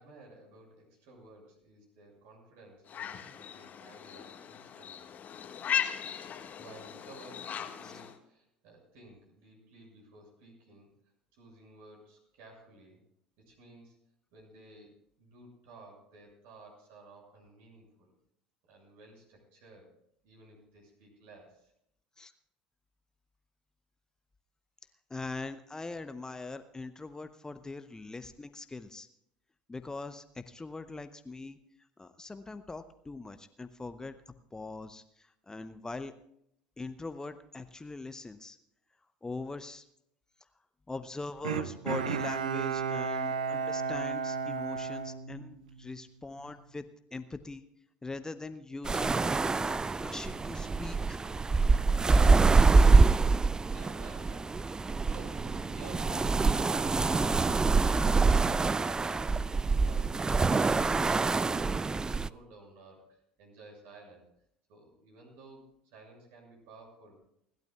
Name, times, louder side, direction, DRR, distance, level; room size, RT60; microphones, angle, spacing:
voice 1, 0.0-5.2 6.5-10.9 11.3-13.0 13.4-14.0 14.3-18.1 18.7-19.9 20.2-21.7 53.6-61.1 61.4-64.3 64.7-67.2, right 2 dB, 60° right, 0 dB, 6.7 m, -54 dB
sound 1, 2.9-8.2, left 8 dB, 40° left, 1.6 m, -37 dB
voice 2, 25.1-29.1 29.7-31.6 32.0-34.2 34.5-36.1 36.8-38.6 39.2-39.8 40.9-47.6 48.0-51.2, left 3 dB, 15° left, 10 dB, 0.8 m, -42 dB
Bowed string instrument, 41.4-45.9 46.4-46.5, right 6 dB, 75° right, 0.7 m, -33 dB
sound 2, 48.8-62.3, right 4 dB, 15° right, 0.4 m, -25 dB
29.5 x 12.0 x 2.3 m, 0.74 s
figure-of-eight pair, 65°, 4 cm